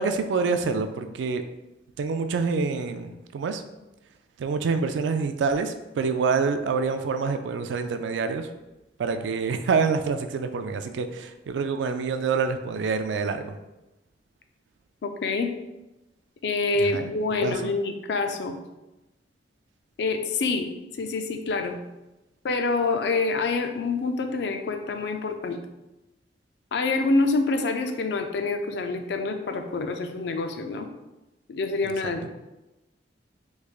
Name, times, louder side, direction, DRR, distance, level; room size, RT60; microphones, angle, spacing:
voice 1, 0.0-1.4 2.0-3.6 4.4-8.5 9.0-13.6 16.8-17.1 17.4-17.7, right 5 dB, 85° right, 8 dB, 0.3 m, -26 dB
voice 2, 15.0-15.5 16.4-18.6 20.0-20.7 21.0-21.8 22.4-25.6 26.7-30.9 31.5-32.2, left 3 dB, 65° left, 6 dB, 0.4 m, -26 dB
3.5 x 3.1 x 2.4 m, 1.0 s
head